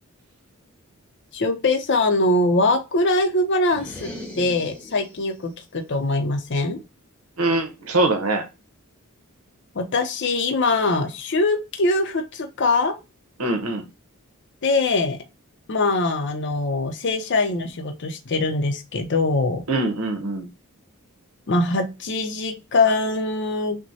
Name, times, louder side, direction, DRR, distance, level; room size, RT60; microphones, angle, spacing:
voice 1, 1.3-4.1 4.4-6.8 9.7-13.0 14.6-15.2 15.7-19.6 21.5-23.8, left 2 dB, 55° left, 0.7 m, -22 dB
sound 1, 3.7-5.3, left 1 dB, 5° left, 1.0 m, -38 dB
voice 2, 7.4-8.5 13.4-13.9 19.7-20.5, right 2 dB, 90° right, 1.0 m, -23 dB
6.0 x 2.2 x 2.7 m
head